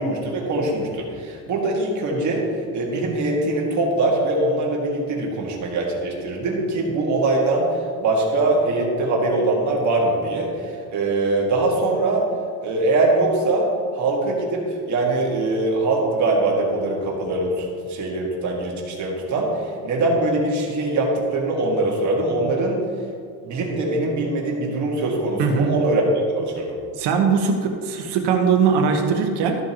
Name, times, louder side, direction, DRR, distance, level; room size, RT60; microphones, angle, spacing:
voice 1, 0.0-2.4 2.7-12.2 12.6-13.7 13.9-22.8 23.4-26.0 26.3-26.8, right 2 dB, 45° right, -1 dB, 1.9 m, -22 dB
voice 2, 25.4-25.7 27.0-29.6, right 5 dB, 85° right, 3 dB, 1.4 m, -20 dB
13.5 x 7.7 x 3.0 m, 2.2 s
cardioid pair, 170°, 39 cm